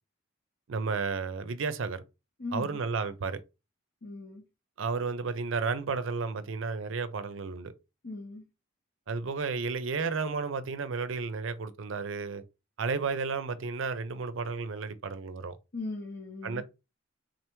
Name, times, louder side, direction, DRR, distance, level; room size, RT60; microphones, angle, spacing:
voice 1, 0.7-2.0 2.5-3.4 4.8-7.7 9.1-12.4 12.8-15.6 16.4-16.6, right 4 dB, 70° right, 0.5 m, -32 dB
voice 2, 2.4-2.8 4.0-4.4 8.0-8.5 15.7-16.6, left 3 dB, 55° left, 0.8 m, -38 dB
3.9 x 3.3 x 3.0 m
head